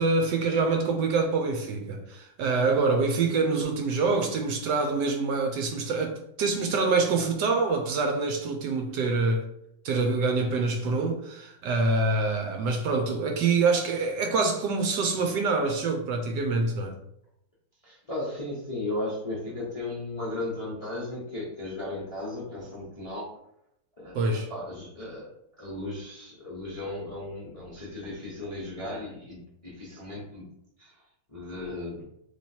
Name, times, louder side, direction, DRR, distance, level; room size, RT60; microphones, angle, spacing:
voice 1, 0.0-9.4 9.8-16.9 24.1-24.5, right 3 dB, 70° right, 1.1 m, -26 dB
voice 2, 17.8-23.3 24.0-25.3 25.6-30.4 30.8-30.9 31.3-32.0, left 2 dB, 30° left, 0.7 m, -36 dB
3.3 x 2.9 x 4.2 m
omnidirectional pair, 2.1 m